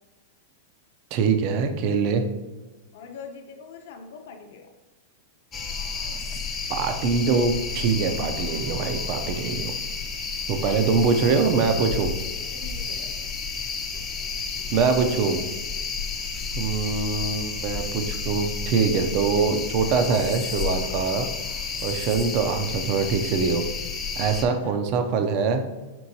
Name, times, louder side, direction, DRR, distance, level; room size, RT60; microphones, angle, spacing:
voice 1, 1.1-2.2 6.7-9.7 10.5-12.1 14.7-15.4 16.6-21.3 21.8-23.6 24.2-25.7, right 5 dB, 45° right, 6 dB, 0.4 m, -23 dB
voice 2, 2.9-4.7 10.6-11.0 12.5-13.2 24.5-25.0, left 5 dB, 65° left, 4 dB, 0.7 m, -43 dB
sound 1, 5.5-24.4, left 5 dB, 20° left, 0.5 m, -31 dB
4.4 x 3.6 x 2.7 m, 1.2 s
supercardioid pair, 145°, 0 cm